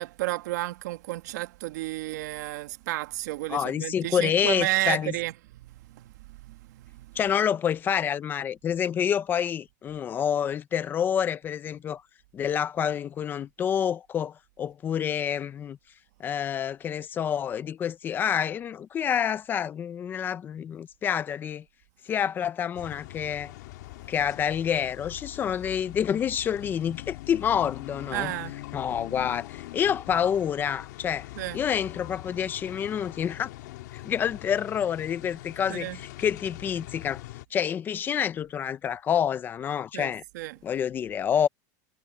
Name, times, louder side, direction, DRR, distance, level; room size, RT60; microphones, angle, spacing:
voice 1, 0.0-7.1 28.1-28.5 31.4-31.6 35.7-36.0 39.9-40.6, right 18 dB, 80° right, 1.6 m, -32 dB
voice 2, 3.5-5.1 7.2-12.0 12.3-15.8 16.2-21.6 22.1-23.5 24.1-28.3 28.7-31.3 31.5-33.5 33.9-37.2 37.5-40.2 40.6-41.5, left 8 dB, 20° left, 0.6 m, -28 dB
sound 1, 22.7-37.4, left 17 dB, 75° left, 1.8 m, -42 dB
supercardioid pair, 165°, 9 cm